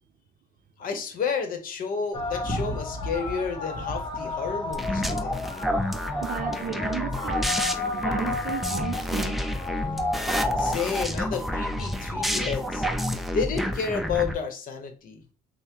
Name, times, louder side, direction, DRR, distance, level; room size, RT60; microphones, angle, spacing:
voice 1, 0.8-5.4 10.6-12.9 13.3-15.2, left 5 dB, 55° left, 0.9 m, -31 dB
sound 1, 2.1-14.0, left 3 dB, 25° left, 1.0 m, -34 dB
sound 2, 4.7-14.3, equal, ahead, 0.5 m, -29 dB
voice 2, 6.2-7.5 7.9-9.4, right 8 dB, 50° right, 0.6 m, -34 dB
5.4 x 2.1 x 2.9 m
cardioid pair, 110°, 17 cm